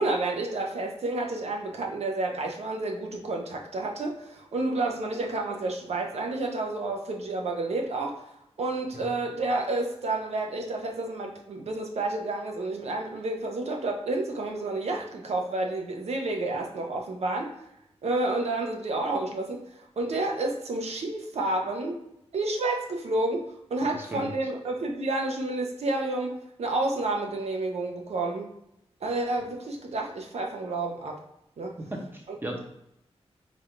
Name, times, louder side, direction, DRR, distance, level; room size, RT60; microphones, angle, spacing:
voice 1, 0.0-8.2 8.6-17.5 18.0-22.0 22.3-28.5 29.0-31.2 31.6-31.8, right 2 dB, 70° right, 1 dB, 0.7 m, -30 dB
voice 2, 24.0-24.3 31.9-32.6, right 1 dB, 20° right, 1 dB, 0.8 m, -36 dB
3.3 x 2.5 x 4.3 m, 0.81 s
wide cardioid pair, 155°, 11 cm